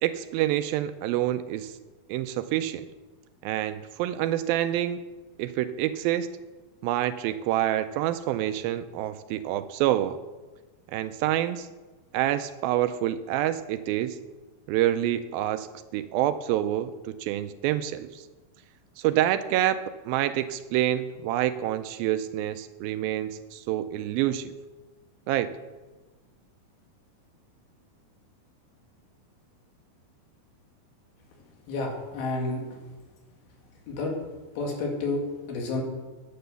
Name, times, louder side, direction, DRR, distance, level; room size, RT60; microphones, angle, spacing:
voice 1, 0.0-1.7 2.1-2.9 3.4-5.0 5.4-6.3 6.8-10.2 10.9-11.7 12.1-14.2 14.7-15.7 15.9-18.2 19.0-24.5 25.3-25.5, right 13 dB, 80° right, 11 dB, 2.2 m, -27 dB
voice 2, 31.7-32.6 33.9-34.1 34.6-35.2 35.5-35.8, left 2 dB, 75° left, 1 dB, 3.8 m, -30 dB
9.7 x 9.5 x 6.8 m, 1.2 s
omnidirectional pair, 4.4 m